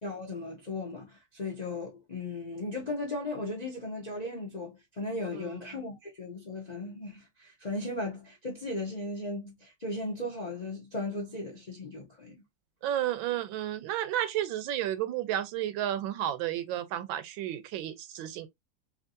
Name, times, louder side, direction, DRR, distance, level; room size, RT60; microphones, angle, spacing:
voice 1, 0.0-12.4, left 2 dB, 80° left, 0.3 m, -36 dB
voice 2, 12.8-18.5, right 12 dB, 85° right, 1.4 m, -32 dB
3.5 x 2.8 x 2.6 m
omnidirectional pair, 2.1 m